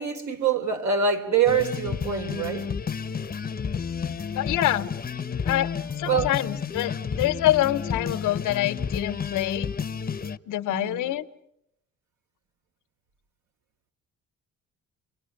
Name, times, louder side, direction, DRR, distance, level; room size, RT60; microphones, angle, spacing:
voice 1, 0.0-2.7 6.1-6.3 10.7-11.0, right 6 dB, 70° right, 3.8 m, -25 dB
sound 1, 1.4-10.4, left 6 dB, 30° left, 0.9 m, -31 dB
voice 2, 4.3-4.9 5.4-5.7 6.0-9.7 10.5-11.3, left 14 dB, 90° left, 1.2 m, -26 dB
29.0 x 24.0 x 6.7 m
cardioid pair, 90°, 30 cm